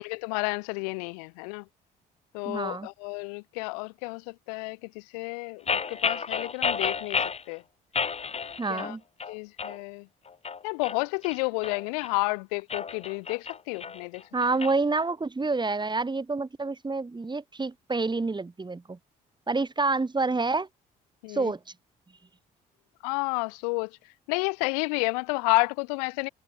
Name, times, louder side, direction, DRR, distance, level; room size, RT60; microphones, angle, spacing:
voice 1, 0.0-1.6 2.3-5.6 5.9-7.2 7.5-7.6 8.7-9.0 9.3-10.0 10.6-14.2 21.2-21.5 23.0-23.9 24.3-26.3, left 32 dB, 90° left, 0.8 m, -30 dB
voice 2, 2.4-2.9 8.6-9.0 14.3-19.0 19.5-20.7 21.3-21.6, right 3 dB, 20° right, 2.7 m, -28 dB
sound 1, 5.7-7.4 7.9-8.9 9.2-9.8 10.3-12.1 12.6-14.7, left 5 dB, 30° left, 1.2 m, -31 dB
supercardioid pair, 60°, 20 cm